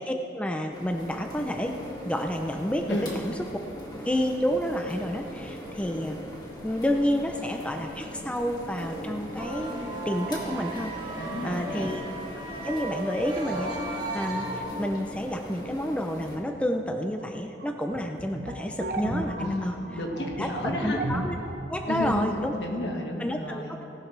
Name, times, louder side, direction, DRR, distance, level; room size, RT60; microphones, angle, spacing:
voice 1, 0.0-3.4 4.1-6.2 6.6-9.7 10.1-10.9 11.4-12.1 12.6-19.8 20.4-20.5 20.8-21.4 21.7-22.5 23.2-23.9, equal, 5° left, 4 dB, 0.5 m, -30 dB
sound 1, 0.7-16.4, left 1 dB, 25° left, 2.0 m, -40 dB
sound 2, 9.4-14.6, right 2 dB, 25° right, 2.1 m, -35 dB
voice 2, 11.1-11.9 19.4-21.0 21.9-23.7, left 1 dB, 70° left, 1 dB, 1.7 m, -32 dB
sound 3, 17.2-17.3 17.6-22.3, right 1 dB, 55° right, 1.0 m, -34 dB
18.0 x 11.5 x 3.3 m, 2.7 s
head